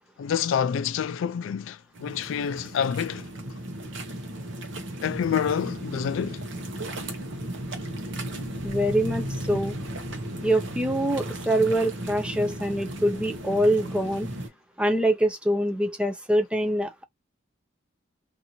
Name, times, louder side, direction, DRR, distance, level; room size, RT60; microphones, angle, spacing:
voice 1, 0.2-3.3 5.0-6.4, left 7 dB, 75° left, 0.3 m, -27 dB
sound 1, 1.9-14.5, right 1 dB, 65° right, 0.8 m, -35 dB
voice 2, 8.6-9.8 10.4-14.3 14.8-17.0, right 1 dB, 5° right, 0.4 m, -24 dB
2.8 x 2.6 x 2.6 m
head